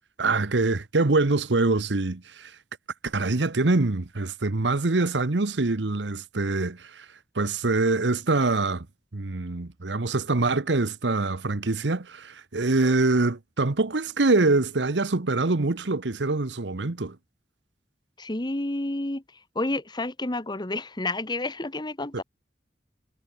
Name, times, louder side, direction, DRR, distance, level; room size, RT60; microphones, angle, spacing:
voice 1, 0.2-2.5 3.0-7.1 7.3-8.9 9.1-17.2 22.1-22.2, right 3 dB, 85° right, 1.1 m, -24 dB
voice 2, 18.2-19.2 19.5-22.2, left 2 dB, 25° left, 1.3 m, -30 dB
head